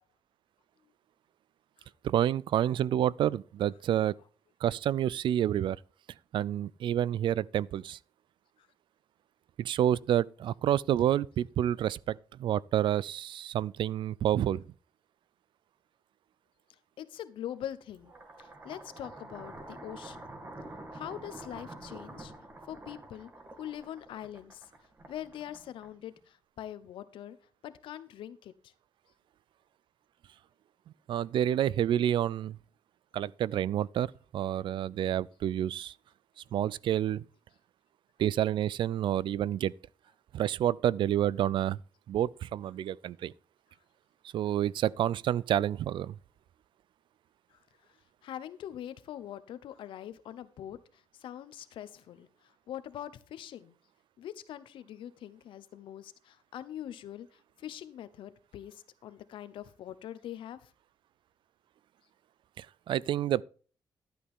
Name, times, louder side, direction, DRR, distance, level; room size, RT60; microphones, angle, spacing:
voice 1, 2.0-4.1 4.6-5.8 6.3-8.0 9.6-14.6 31.1-32.6 33.1-34.1 34.3-35.9 36.5-37.2 38.2-39.7 40.3-41.8 42.1-43.3 44.3-46.2 62.6-63.4, right 11 dB, 70° right, 0.4 m, -29 dB
voice 2, 17.0-18.1 18.4-20.3 20.9-22.3 22.7-23.3 23.6-24.7 25.1-27.4 27.6-28.7 47.5-47.6 48.2-53.7 54.2-60.7, left 11 dB, 85° left, 0.9 m, -43 dB
sound 1, 18.0-26.2, right 1 dB, 30° right, 2.4 m, -47 dB
12.5 x 8.5 x 3.6 m
cardioid pair, 90°, 9 cm